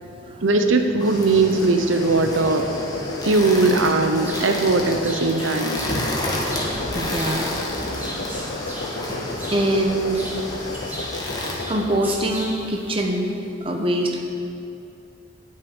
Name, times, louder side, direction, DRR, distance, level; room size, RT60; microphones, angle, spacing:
voice 1, 0.4-2.6 3.2-5.8 11.1-11.2, right 3 dB, 85° right, 6 dB, 0.8 m, -19 dB
sound 1, 1.0-11.6, left 1 dB, 20° left, 1.4 m, -30 dB
sound 2, 1.9-12.1, left 3 dB, 60° left, 0.5 m, -34 dB
sound 3, 3.2-13.0, equal, 10° right, 1.6 m, -38 dB
voice 2, 6.9-7.5 9.5-10.3 11.7-13.3 13.6-14.2, right 1 dB, 30° right, 1 dB, 1.0 m, -23 dB
9.4 x 6.6 x 8.8 m, 2.7 s
head